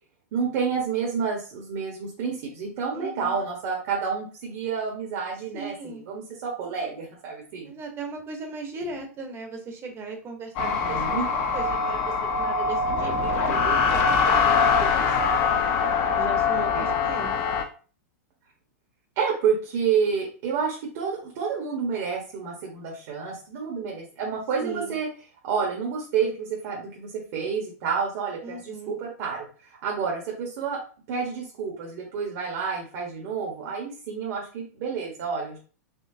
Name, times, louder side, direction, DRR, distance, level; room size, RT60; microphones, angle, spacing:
voice 1, 0.3-7.7 10.6-11.3 16.7-16.9 19.2-25.1 25.4-30.8 31.1-35.6, right 6 dB, 55° right, -2 dB, 1.3 m, -29 dB
voice 2, 2.9-3.4 5.5-6.0 7.6-15.6 16.2-17.3 24.6-25.0 28.4-28.9, right 3 dB, 25° right, 4 dB, 1.0 m, -38 dB
sound 1, 10.6-17.6, left 5 dB, 45° left, 0.8 m, -23 dB
4.3 x 2.8 x 2.8 m, 0.37 s
hypercardioid pair, 120°, 9 cm